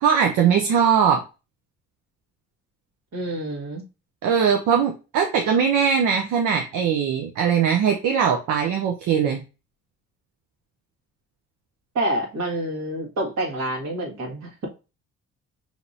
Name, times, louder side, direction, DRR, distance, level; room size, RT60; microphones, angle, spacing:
voice 1, 0.0-1.2 4.2-9.4, right 7 dB, 85° right, 0.8 m, -20 dB
voice 2, 3.1-3.8 11.9-14.7, right 1 dB, 65° right, 1.9 m, -27 dB
5.8 x 3.0 x 2.7 m
cardioid pair, 90°, 30 cm